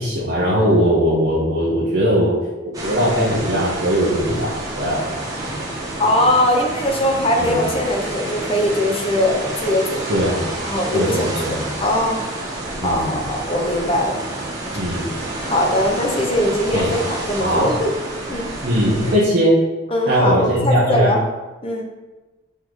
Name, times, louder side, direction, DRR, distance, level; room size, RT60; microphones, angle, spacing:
voice 1, 0.0-2.4 2.8-5.0 7.4-7.6 10.1-10.4 10.9-11.6 12.8-13.1 14.8-15.1 16.7-16.9 17.4-17.7 18.6-19.6 20.1-21.2, equal, 50° right, -8 dB, 1.2 m, -19 dB
sound 1, 2.7-19.2, right 1 dB, 20° right, 1.2 m, -29 dB
voice 2, 6.0-10.3 10.6-12.3 12.8-14.2 15.5-17.9 18.3-18.5 19.9-21.2 21.6-21.8, left 1 dB, 30° left, 1 dB, 0.9 m, -21 dB
5.3 x 4.2 x 4.9 m, 1.1 s
head